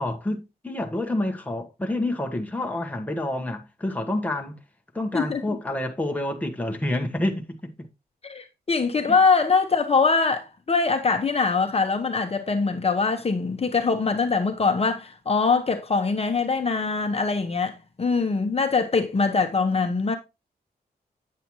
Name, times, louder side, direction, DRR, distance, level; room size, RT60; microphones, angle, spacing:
voice 1, 0.0-4.6 4.9-7.7 9.1-9.2, left 1 dB, 10° left, 1.2 m, -28 dB
voice 2, 5.1-5.6 8.2-20.2, left 4 dB, 40° left, 1.0 m, -23 dB
8.5 x 7.7 x 3.0 m
wide cardioid pair, 135°, 16 cm